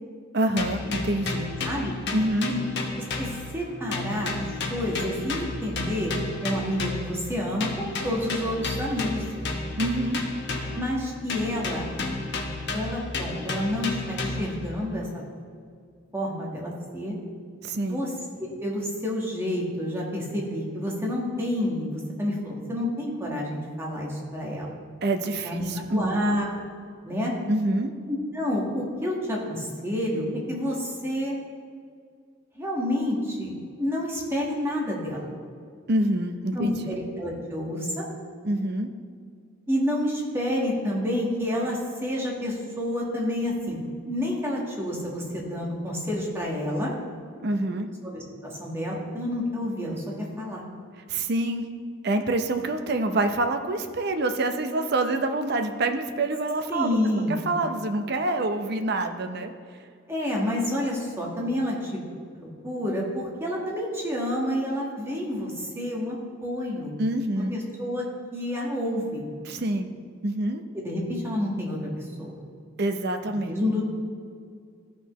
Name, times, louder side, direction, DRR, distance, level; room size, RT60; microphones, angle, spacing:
voice 1, 0.3-1.5 2.1-2.5 9.8-10.2 17.6-18.0 25.0-26.3 27.5-27.9 35.9-36.8 38.4-38.9 47.4-47.9 51.1-51.6 52.0-57.0 57.3-59.5 67.0-67.6 69.4-69.9 70.2-70.6 72.8-73.6, right 2 dB, 55° right, 6 dB, 0.6 m, -26 dB
sound 1, 0.6-3.7 3.9-7.2 7.6-10.9 11.3-14.6, left 2 dB, 55° left, 1.1 m, -32 dB
voice 2, 3.0-3.3 3.5-6.1 6.4-9.4 10.7-11.9 12.7-15.2 16.1-17.2 17.8-18.1 18.4-24.8 25.4-26.6 27.0-27.3 28.1-31.4 32.6-33.5 33.8-35.3 36.5-38.0 39.7-43.8 44.1-46.9 48.0-50.6 56.7-57.4 60.1-61.9 62.4-67.0 67.4-68.1 68.3-69.2 70.7-72.4 73.3-73.8, left 1 dB, 10° right, -3 dB, 1.4 m, -29 dB
14.0 x 6.1 x 3.1 m, 2.2 s
head